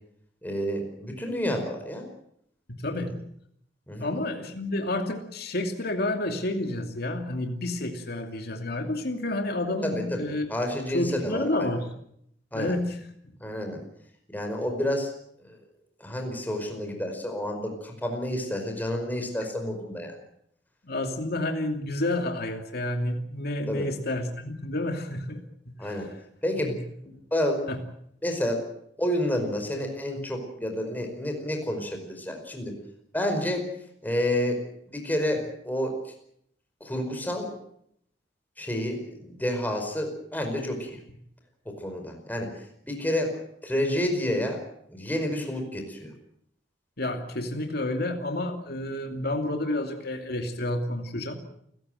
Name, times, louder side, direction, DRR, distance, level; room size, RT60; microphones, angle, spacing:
voice 1, 0.4-2.0 3.9-4.1 9.8-11.7 12.5-12.7 13.4-13.8 14.3-15.1 15.4-15.6 16.0-20.2 23.7-23.9 25.8-26.1 26.4-26.7 27.0-27.6 28.2-28.6 29.0-32.8 33.1-33.6 34.0-34.6 34.9-36.1 36.8-37.5 38.6-41.0 41.6-44.6 44.9-46.1, left 1 dB, 10° left, 3 dB, 5.0 m, -29 dB
voice 2, 2.7-3.1 4.0-10.6 10.9-11.9 12.5-13.0 20.8-26.1 26.6-26.8 27.7-27.8 47.0-51.4, left 1 dB, 60° left, 4 dB, 2.7 m, -30 dB
29.0 x 15.5 x 7.9 m, 0.71 s
head